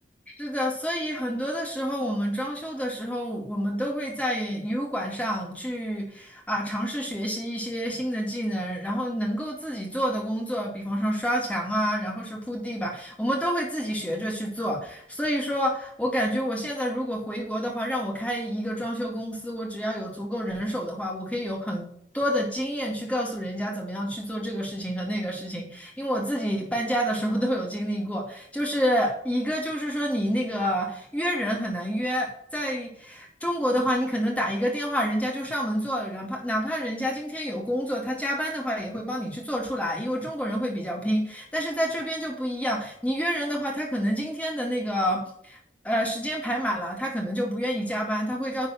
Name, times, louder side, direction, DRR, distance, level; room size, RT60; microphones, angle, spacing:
voice 1, 0.4-21.9 22.1-45.6 45.8-48.7, equal, 10° left, -1 dB, 2.2 m, -28 dB
10.5 x 4.0 x 5.8 m, 0.70 s
head